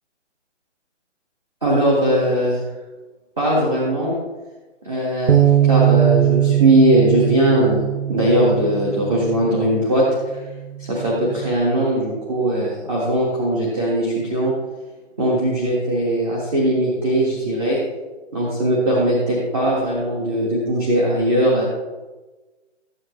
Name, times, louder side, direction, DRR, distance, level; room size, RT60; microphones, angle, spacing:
voice 1, 1.6-2.6 3.4-4.1 4.8-7.8 8.1-10.4 10.9-14.5 15.2-17.8 18.3-21.6, right 1 dB, ahead, -16 dB, 0.6 m, -19 dB
Bass guitar, 5.3-9.7 10.4-11.5, right 12 dB, 70° right, 0.7 m, -20 dB
14.0 x 9.6 x 3.3 m, 1.2 s
hypercardioid pair, 170°, 36 cm